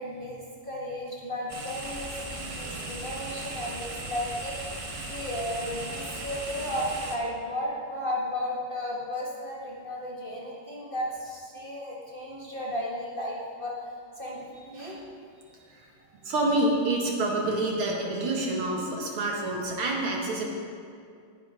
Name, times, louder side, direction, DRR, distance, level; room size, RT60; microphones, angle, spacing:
voice 1, 0.0-4.8 5.1-15.0, left 1 dB, 25° left, -5 dB, 1.5 m, -34 dB
sound 1, 1.5-7.2, right 2 dB, 35° right, 0.5 m, -37 dB
voice 2, 14.6-15.0 15.5-15.9 16.2-20.5, right 2 dB, 75° right, -2 dB, 2.8 m, -28 dB
19.0 x 9.9 x 3.7 m, 2.3 s
omnidirectional pair, 2.4 m